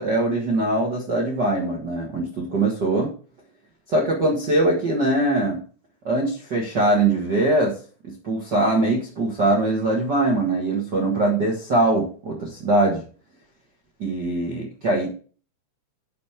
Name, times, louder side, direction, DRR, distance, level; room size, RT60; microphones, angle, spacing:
voice 1, 0.0-3.1 3.9-5.6 6.0-7.7 8.0-13.0 14.0-15.1, right 2 dB, 65° right, -1 dB, 1.0 m, -22 dB
10.5 x 4.3 x 5.8 m, 0.39 s
omnidirectional pair, 4.9 m